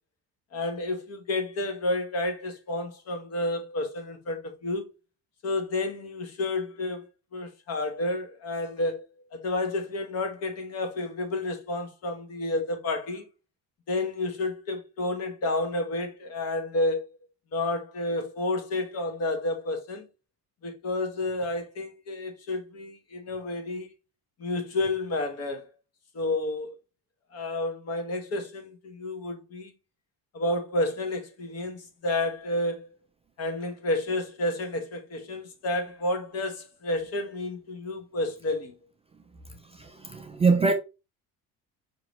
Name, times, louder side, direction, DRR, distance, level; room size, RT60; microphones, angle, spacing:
voice 1, 0.5-4.9 5.4-9.0 9.3-13.3 13.9-17.0 17.5-20.1 20.6-23.9 24.4-25.7 26.1-26.7 27.3-29.7 30.3-32.9 33.4-38.7, left 2 dB, 45° left, 1.1 m, -30 dB
voice 2, 39.7-40.7, right 4 dB, 20° right, 0.3 m, -24 dB
5.2 x 2.9 x 2.9 m
cardioid pair, 140°, 34 cm